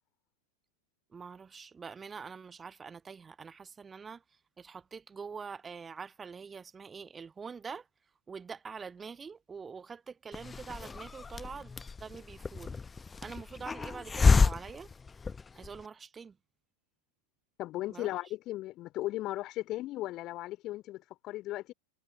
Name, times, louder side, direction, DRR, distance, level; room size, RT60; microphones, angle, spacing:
voice 1, 1.1-4.2 4.6-7.9 8.3-12.8 13.2-14.9 15.5-16.4 17.9-18.1, right 5 dB, 15° right, 1.3 m, -45 dB
Hiss, 10.3-15.8, left 4 dB, 15° left, 1.0 m, -30 dB
voice 2, 17.6-21.7, left 16 dB, 35° left, 2.6 m, -36 dB
figure-of-eight pair, 90°, 0 cm